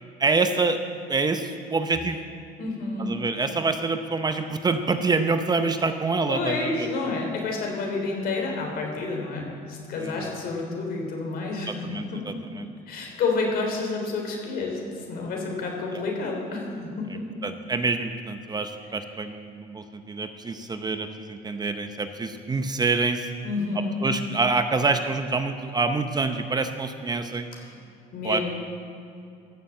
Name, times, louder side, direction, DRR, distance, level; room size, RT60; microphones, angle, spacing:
voice 1, 0.2-0.8 1.1-2.2 3.0-6.9 10.0-10.3 11.7-12.7 15.9-16.0 17.4-23.3 24.0-27.5 28.2-28.4, right 3 dB, 25° right, 8 dB, 0.7 m, -26 dB
voice 2, 2.6-3.2 6.3-12.2 12.9-14.8 15.1-17.2 23.4-24.0 27.7-27.8 28.1-28.4, left 3 dB, 65° left, 1 dB, 3.6 m, -29 dB
14.5 x 7.0 x 7.7 m, 2.6 s
cardioid pair, 110°, 17 cm